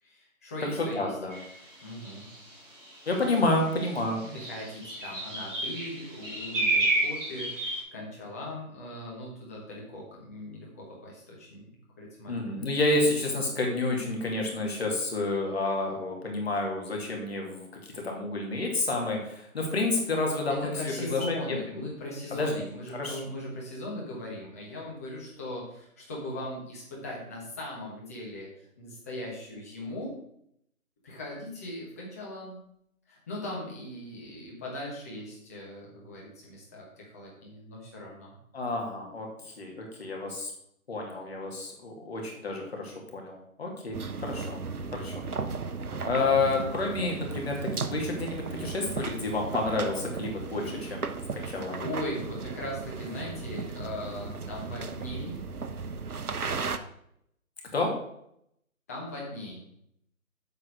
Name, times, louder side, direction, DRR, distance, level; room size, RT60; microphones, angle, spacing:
voice 1, 0.0-1.2 1.8-2.3 4.3-12.7 20.6-28.5 28.8-30.1 31.0-32.6 33.1-38.4 46.3-46.6 51.7-55.4 58.9-59.6, left 1 dB, 10° left, -4 dB, 1.1 m, -39 dB
voice 2, 0.9-1.4 3.1-4.3 12.3-17.7 17.9-20.7 21.1-21.6 22.3-22.6 22.9-23.2 38.5-40.5 40.9-44.6 44.9-45.2 46.0-51.0 51.3-51.8 57.7-57.9, left 2 dB, 45° left, 0 dB, 2.3 m, -29 dB
sound 1, 1.3-1.5 2.0-2.3 3.3-3.4 3.7-7.8, right 2 dB, 10° right, 3.9 m, -30 dB
sound 2, 43.9-56.8, right 4 dB, 85° right, 0.9 m, -36 dB
8.2 x 4.7 x 6.3 m, 0.74 s
figure-of-eight pair, 160°, 43 cm